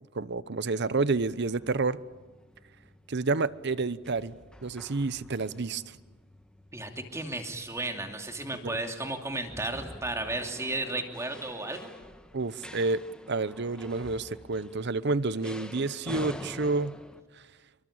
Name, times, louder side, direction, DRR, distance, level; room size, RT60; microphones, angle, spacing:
voice 1, 0.1-2.0 3.1-4.3 4.6-6.0 8.6-8.8 12.3-13.0 13.3-17.0, right 3 dB, 55° right, 17 dB, 0.8 m, -29 dB
sound 1, 0.6-17.2, equal, 5° left, 1.3 m, -48 dB
voice 2, 6.7-11.9, right 2 dB, 15° right, 4 dB, 2.8 m, -34 dB
28.5 x 23.5 x 8.8 m, 1.2 s
head